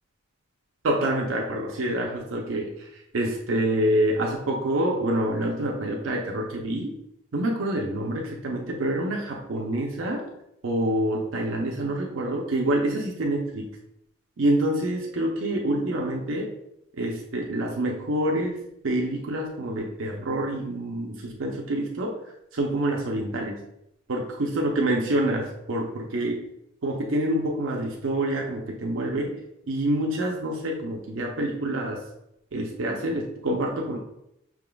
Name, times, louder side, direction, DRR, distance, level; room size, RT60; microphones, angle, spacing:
voice 1, 0.8-7.0 7.3-10.3 10.6-13.7 14.4-16.5 17.0-22.2 22.5-23.6 24.1-26.5 26.8-29.4 29.7-32.0 32.5-34.0, right 1 dB, 85° right, 0 dB, 0.6 m, -27 dB
5.7 x 3.5 x 2.3 m, 0.80 s
head